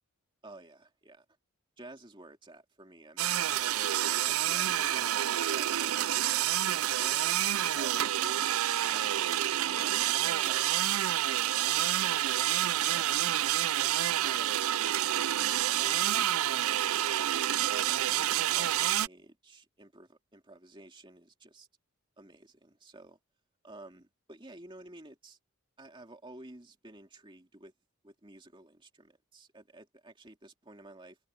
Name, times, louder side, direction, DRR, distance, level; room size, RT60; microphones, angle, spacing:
voice 1, 0.4-1.2 1.8-3.8 4.1-6.2 6.6-11.3 11.8-12.4 12.9-16.3 16.8-17.3 17.7-21.7 22.2-23.2 23.6-25.4 25.8-27.7 28.0-31.2, right 1 dB, 20° right, 2.5 m, -52 dB
sound 1, 3.2-19.1, right 12 dB, 75° right, 0.5 m, -28 dB
head